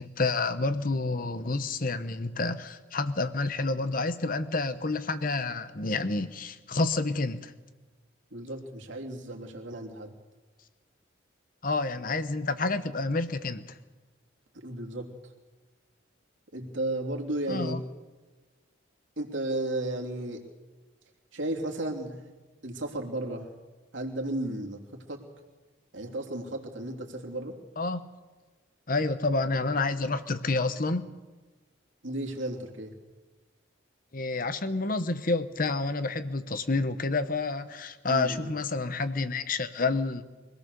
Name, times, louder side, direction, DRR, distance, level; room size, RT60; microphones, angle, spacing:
voice 1, 0.0-7.5 11.6-13.8 17.5-17.8 27.8-28.1 28.9-31.1 34.1-40.2, left 3 dB, 45° left, 12 dB, 1.0 m, -29 dB
voice 2, 8.3-10.1 14.5-15.3 16.5-17.8 19.2-20.4 21.3-22.2 22.6-23.5 23.9-25.2 25.9-27.6 32.0-32.9 38.1-38.5, right 1 dB, 75° right, 0 dB, 3.0 m, -34 dB
24.5 x 17.5 x 6.8 m, 1.3 s
head